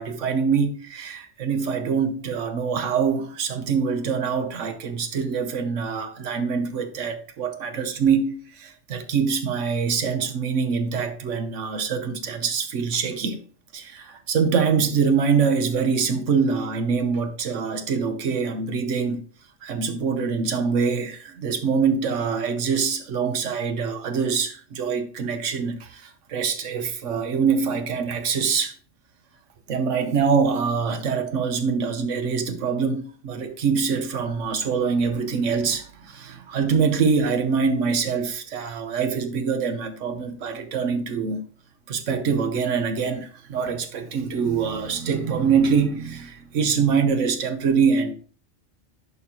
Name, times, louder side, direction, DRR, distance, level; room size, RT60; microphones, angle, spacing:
voice 1, 0.0-13.4 13.7-19.2 19.6-28.7 29.7-41.4 41.9-48.1, right 5 dB, 70° right, 1.2 m, -24 dB
11.0 x 4.2 x 2.9 m
omnidirectional pair, 1.3 m